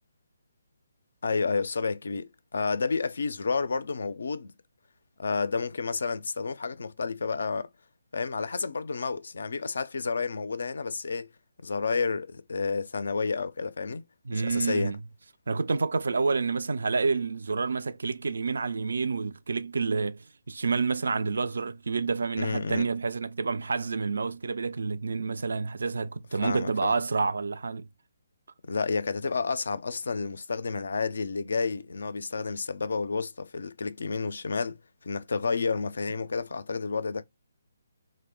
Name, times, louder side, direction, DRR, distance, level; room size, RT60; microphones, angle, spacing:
voice 1, 1.2-4.5 5.2-7.7 8.1-11.3 11.6-14.0 14.3-14.9 22.4-22.9 26.4-26.9 28.6-34.8 35.0-37.2, left 4 dB, 70° left, 0.3 m, -30 dB
voice 2, 14.3-15.0 15.5-27.9, right 4 dB, 70° right, 0.3 m, -29 dB
2.6 x 2.1 x 3.4 m
figure-of-eight pair, 145°, 0 cm